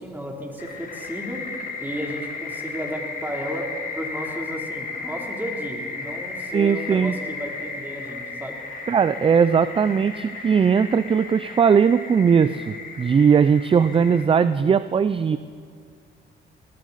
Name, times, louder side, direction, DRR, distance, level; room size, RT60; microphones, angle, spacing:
voice 1, 0.0-1.4 1.8-8.6, equal, 10° right, 0 dB, 3.1 m, -33 dB
sound 1, 0.6-14.2, left 4 dB, 45° left, 1.9 m, -35 dB
voice 2, 6.5-7.1 8.9-15.4, right 6 dB, 25° right, 14 dB, 0.4 m, -19 dB
19.0 x 18.5 x 4.1 m, 2.2 s
cardioid pair, 90°, 20 cm